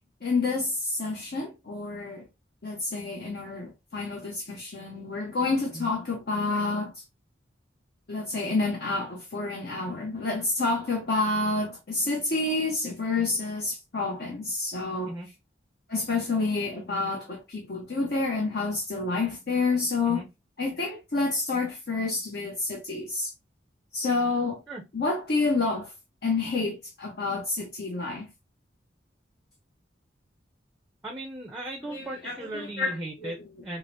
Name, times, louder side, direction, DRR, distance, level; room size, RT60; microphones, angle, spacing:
voice 1, 0.2-2.2 2.6-6.9 8.1-15.1 15.9-20.2 20.6-23.3 23.9-24.6 24.9-25.9 26.2-28.3 31.8-33.4, left 3 dB, 55° left, 0.7 m, -29 dB
voice 2, 31.0-33.8, right 1 dB, 5° right, 0.5 m, -37 dB
4.8 x 2.0 x 2.6 m
head